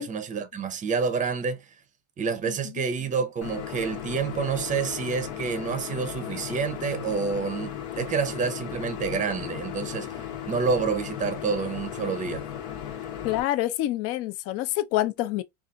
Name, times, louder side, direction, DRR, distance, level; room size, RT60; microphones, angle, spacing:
voice 1, 0.0-1.6 2.2-12.5, right 5 dB, 25° right, 0.6 m, -28 dB
voice 2, 2.5-2.8 13.2-15.4, left 14 dB, 45° left, 0.4 m, -27 dB
sound 1, 3.4-13.4, left 10 dB, 70° left, 1.0 m, -36 dB
4.0 x 2.4 x 2.4 m
supercardioid pair, 130°, 33 cm